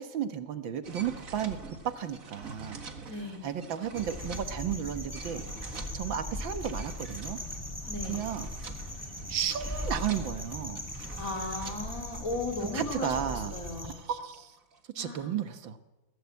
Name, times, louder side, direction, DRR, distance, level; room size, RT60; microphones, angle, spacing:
voice 1, 0.0-2.8 3.4-7.4 8.1-8.5 9.3-10.8 12.7-13.5 13.8-14.6 15.0-15.8, right 9 dB, 80° right, 9 dB, 2.0 m, -34 dB
sound 1, 0.8-14.8, right 4 dB, 45° right, 2.0 m, -47 dB
voice 2, 3.1-3.4 7.9-8.2 11.1-13.9 15.0-15.3, left 2 dB, 45° left, 3 dB, 4.0 m, -36 dB
sound 2, 4.0-14.0, left 1 dB, 10° left, 3.7 m, -39 dB
22.5 x 17.0 x 8.4 m, 1.1 s
omnidirectional pair, 2.1 m